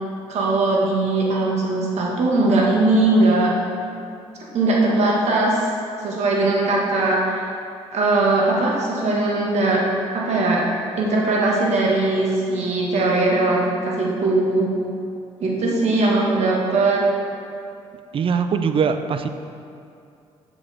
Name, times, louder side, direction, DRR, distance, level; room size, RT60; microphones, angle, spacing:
voice 1, 0.3-3.5 4.5-5.6 6.0-7.4 7.9-9.8 10.1-10.6 11.0-14.7 15.4-17.0, right 2 dB, 65° right, -3 dB, 1.5 m, -20 dB
voice 2, 18.1-19.3, right 6 dB, 45° right, 9 dB, 0.5 m, -21 dB
7.7 x 6.0 x 3.4 m, 2.5 s
cardioid pair, 80°, 12 cm